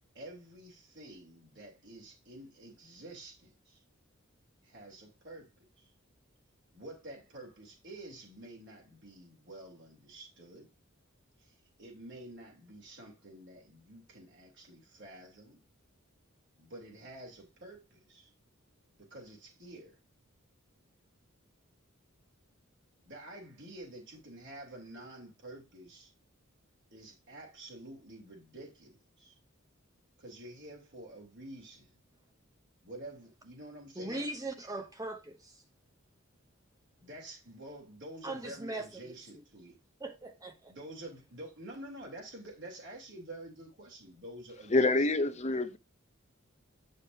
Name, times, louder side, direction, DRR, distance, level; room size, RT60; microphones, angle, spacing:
voice 1, 0.1-3.8 4.6-5.5 5.8-5.9 6.7-10.7 11.4-15.6 16.6-18.3 19.0-20.0 23.1-26.1 26.9-29.3 30.2-31.9 32.8-34.3 37.0-39.8 40.7-45.1, right 1 dB, 60° right, 3.6 m, -49 dB
voice 2, 34.0-35.6 38.2-39.4 40.0-40.7, right 2 dB, 15° right, 0.8 m, -40 dB
voice 3, 44.7-45.8, left 2 dB, 35° left, 0.7 m, -26 dB
8.3 x 6.5 x 2.8 m
head